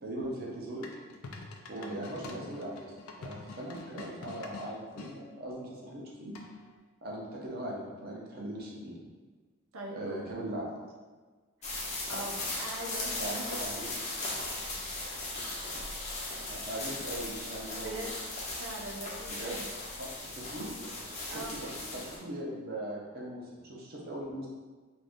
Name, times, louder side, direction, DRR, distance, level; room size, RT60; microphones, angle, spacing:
voice 1, 0.0-0.9 1.7-2.9 3.2-6.4 7.0-9.0 9.9-10.7 13.2-13.8 16.5-18.1 19.3-20.7 21.1-24.5, right 1 dB, 45° right, -3 dB, 0.7 m, -40 dB
sound 1, 0.8-5.1 6.3-6.8, left 3 dB, 85° left, 0.4 m, -46 dB
voice 2, 9.7-10.2 11.6-11.8 12.1-13.6 14.0-14.4 17.8-18.1 18.6-19.7 21.3-21.6, right 1 dB, 85° right, -2 dB, 0.6 m, -42 dB
sound 2, 11.6-22.2, left 2 dB, 30° left, 0.6 m, -38 dB
2.5 x 2.5 x 3.5 m, 1.4 s
head